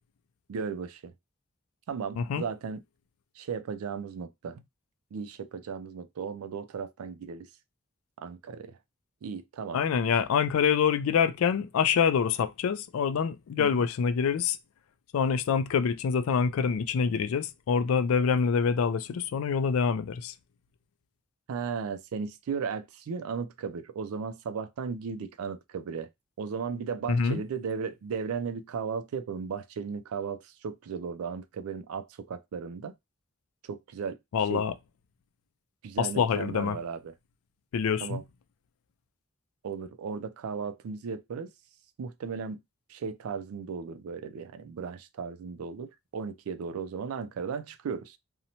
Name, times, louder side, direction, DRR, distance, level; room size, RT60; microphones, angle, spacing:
voice 1, 0.5-1.1 1.9-2.8 3.4-4.6 5.1-7.5 8.2-8.8 9.2-9.8 13.6-13.9 21.5-26.1 26.4-32.9 33.6-34.2 34.5-34.6 35.8-37.1 38.0-38.2 39.6-41.5 42.0-42.6 42.9-48.2, right 6 dB, 90° right, 0.4 m, -36 dB
voice 2, 9.7-14.6 15.1-20.3 27.1-27.4 34.3-34.7 36.0-36.8 37.7-38.2, left 6 dB, 75° left, 0.3 m, -26 dB
2.8 x 2.1 x 2.7 m
head